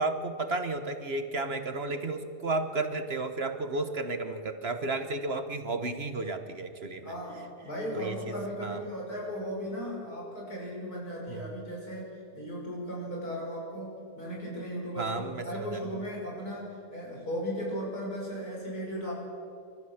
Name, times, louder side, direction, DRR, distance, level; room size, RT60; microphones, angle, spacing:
voice 1, 0.0-7.1 7.9-8.3 8.6-8.8 11.3-11.5 15.0-15.8, right 2 dB, 45° right, 8 dB, 1.3 m, -33 dB
voice 2, 7.0-19.1, equal, 90° left, -3 dB, 6.9 m, -36 dB
27.5 x 14.0 x 7.2 m, 2.6 s
omnidirectional pair, 1.6 m